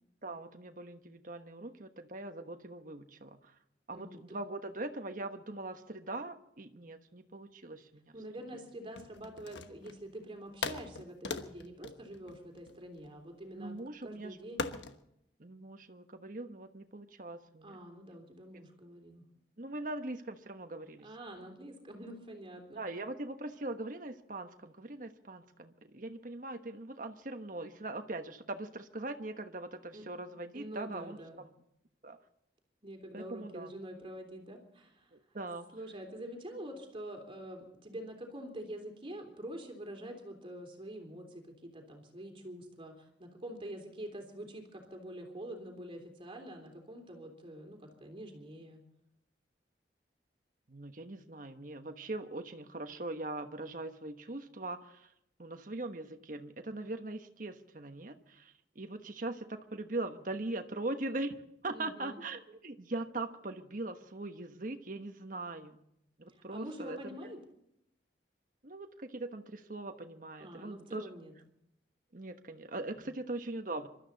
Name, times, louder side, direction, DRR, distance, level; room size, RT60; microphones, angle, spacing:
voice 1, 0.2-3.5 3.9-8.1 13.6-14.4 15.4-17.8 19.6-21.1 22.7-31.2 32.0-32.2 33.1-33.7 35.1-35.7 50.7-55.1 55.4-61.3 61.6-65.8 66.2-67.2 68.6-71.1 72.1-73.9, right 2 dB, 50° right, 7 dB, 1.2 m, -41 dB
voice 2, 8.1-13.7 14.0-14.6 17.6-19.2 21.0-22.8 29.9-30.0 30.5-31.4 32.8-35.1 35.7-48.8 61.7-62.2 66.3-67.4 70.4-71.3 72.9-73.1, right 1 dB, 30° right, 4 dB, 3.4 m, -46 dB
sound 1, 8.9-10.1 10.6-13.1 14.6-15.0, left 4 dB, 90° left, 1.2 m, -40 dB
26.5 x 13.0 x 4.1 m, 0.77 s
head